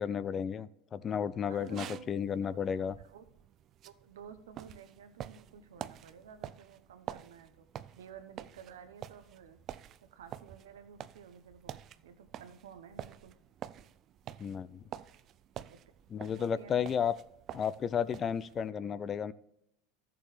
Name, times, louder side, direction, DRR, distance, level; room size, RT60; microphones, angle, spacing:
voice 1, 0.0-2.9 14.4-14.8 16.1-17.1 17.5-19.3, left 7 dB, 35° left, 16 dB, 0.4 m, -33 dB
sound 1, 1.5-18.7, right 10 dB, 45° right, 0.4 m, -48 dB
voice 2, 1.5-2.1 2.5-2.6 3.0-3.3 3.8-7.6 8.0-9.6 10.1-13.4 15.7-15.8 16.3-16.9, right 7 dB, 75° right, 10 dB, 0.8 m, -52 dB
14.5 x 6.9 x 3.2 m, 0.78 s
hypercardioid pair, 80°, 0 cm